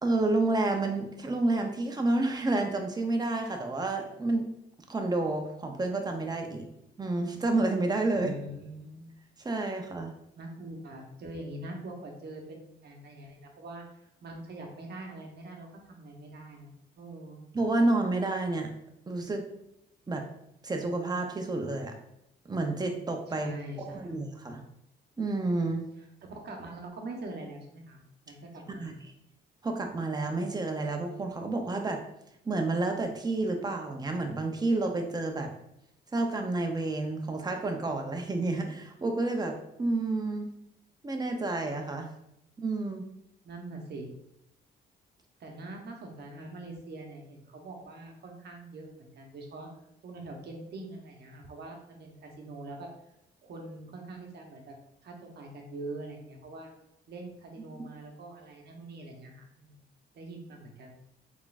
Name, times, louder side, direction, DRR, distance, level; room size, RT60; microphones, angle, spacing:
voice 1, 0.0-4.5 4.9-6.6 7.0-8.3 9.4-10.1 17.5-18.7 19.1-19.4 20.1-20.2 20.6-21.9 22.5-24.6 25.2-25.8 28.8-28.9 29.6-32.0 32.5-35.5 36.1-40.5 41.0-42.1 42.6-43.0, right 2 dB, 20° right, 3 dB, 0.7 m, -29 dB
voice 2, 8.1-9.1 10.4-17.4 23.3-24.2 26.2-29.0 43.4-44.1 45.4-49.7 50.0-52.9 53.4-54.7 55.0-56.7 57.1-59.8 60.2-60.9, right 2 dB, 55° right, 1 dB, 0.9 m, -43 dB
3.7 x 3.5 x 2.5 m, 0.81 s
cardioid pair, 90°, 20 cm